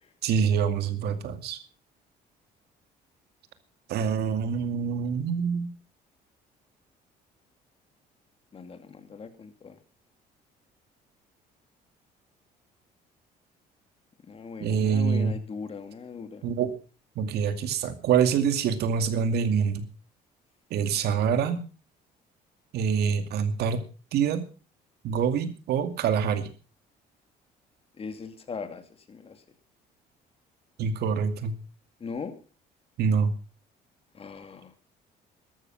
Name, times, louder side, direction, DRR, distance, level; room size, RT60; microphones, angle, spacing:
voice 1, 0.2-1.6 3.9-5.7 14.6-15.4 16.4-16.7 17.2-19.9 20.7-21.6 22.7-23.8 24.1-24.5 25.0-26.5 30.8-31.5 33.0-33.3, right 7 dB, 75° right, 9 dB, 2.3 m, -25 dB
voice 2, 8.5-9.8 14.3-16.4 28.0-28.8 29.1-29.4 32.0-32.3 34.1-34.9, left 5 dB, 35° left, 8 dB, 2.7 m, -39 dB
14.0 x 12.5 x 5.8 m, 0.37 s
cardioid pair, 110°, 17 cm